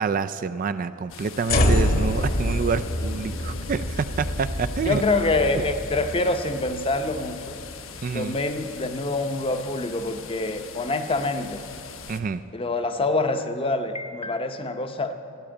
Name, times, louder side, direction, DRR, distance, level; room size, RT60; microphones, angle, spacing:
voice 1, 0.0-5.0 5.5-5.6 8.0-8.4 12.1-12.4, right 5 dB, 40° right, 12 dB, 0.3 m, -27 dB
sound 1, 1.1-12.2, left 6 dB, 70° left, 0.9 m, -42 dB
sound 2, 1.5-7.8, left 1 dB, 45° left, 1.1 m, -26 dB
voice 2, 4.8-7.6 8.1-11.6 12.5-15.1, left 2 dB, 25° left, 7 dB, 0.7 m, -26 dB
13.5 x 8.3 x 8.9 m, 2.6 s
head